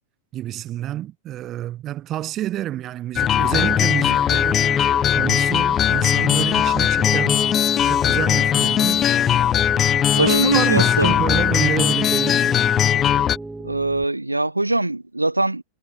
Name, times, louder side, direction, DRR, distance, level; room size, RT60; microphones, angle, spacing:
voice 1, 0.3-7.4 7.8-9.0 10.1-12.5, right 13 dB, 30° right, 2.2 m, -28 dB
sound 1, 3.2-13.4, left 10 dB, 30° left, 0.7 m, -19 dB
Piano, 3.7-14.0, right 2 dB, 5° right, 2.2 m, -33 dB
voice 2, 10.1-11.1 13.6-15.6, right 2 dB, 85° right, 1.6 m, -22 dB
figure-of-eight pair, 90°, 0 cm